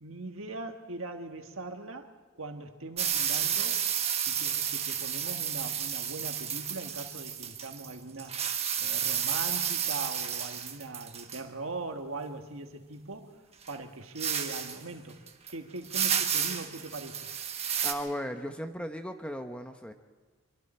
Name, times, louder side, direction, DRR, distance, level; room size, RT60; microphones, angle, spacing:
voice 1, 0.0-8.4 8.8-13.4 13.7-15.2 15.5-17.3, right 3 dB, 65° right, 5 dB, 1.7 m, -41 dB
sound 1, 3.0-7.9 8.2-11.4 13.7-13.8 14.1-14.8 15.3-15.5 15.8-17.9, right 8 dB, 30° right, 1.3 m, -31 dB
voice 2, 17.8-19.9, equal, 5° left, 6 dB, 0.9 m, -36 dB
25.0 x 24.0 x 4.4 m, 1.4 s
head